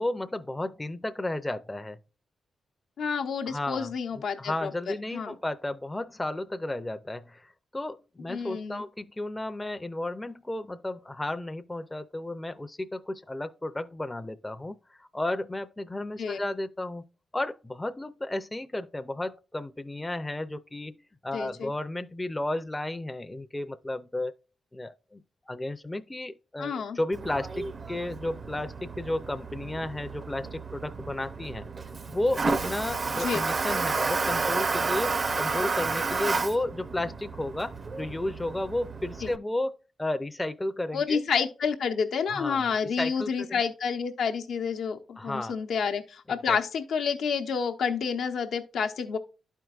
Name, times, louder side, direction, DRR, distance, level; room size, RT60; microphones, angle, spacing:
voice 1, 0.0-2.0 3.5-3.9 4.4-17.0 17.3-24.3 24.7-31.7 32.1-41.2 42.3-43.6 45.2-45.6 46.5-46.6, left 1 dB, 15° left, 0.5 m, -33 dB
voice 2, 3.0-5.3 8.3-8.8 16.2-16.4 21.3-21.7 26.6-27.0 33.1-33.4 39.2-39.3 40.9-49.2, left 6 dB, 75° left, 0.8 m, -29 dB
Toilet flush, 27.1-39.4, right 4 dB, 45° right, 0.5 m, -31 dB
11.5 x 4.5 x 2.4 m
cardioid pair, 65°, 0 cm